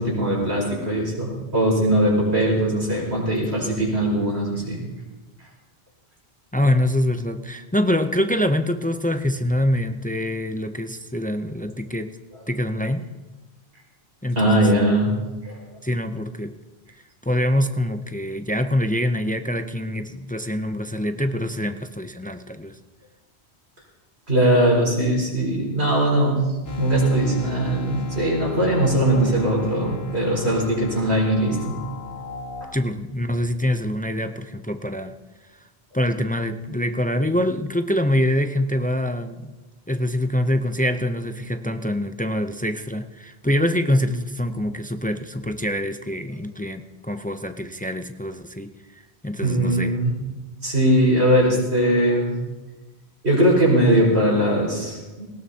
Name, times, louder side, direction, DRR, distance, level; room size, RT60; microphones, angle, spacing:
voice 1, 0.0-4.8 14.4-15.2 15.4-15.6 24.3-26.4 26.7-31.7 32.6-32.7 49.4-50.1 50.6-52.4 53.2-55.3, right 1 dB, 75° right, -3 dB, 5.4 m, -20 dB
voice 2, 6.5-12.2 12.5-13.1 14.2-14.7 15.8-16.6 17.3-22.8 32.7-35.2 35.9-39.5 39.9-48.7 49.2-49.9, left 1 dB, 15° left, 8 dB, 0.3 m, -25 dB
sound 1, 26.6-32.6, left 2 dB, 70° left, 1.7 m, -35 dB
19.0 x 17.5 x 2.8 m, 1.2 s
omnidirectional pair, 1.1 m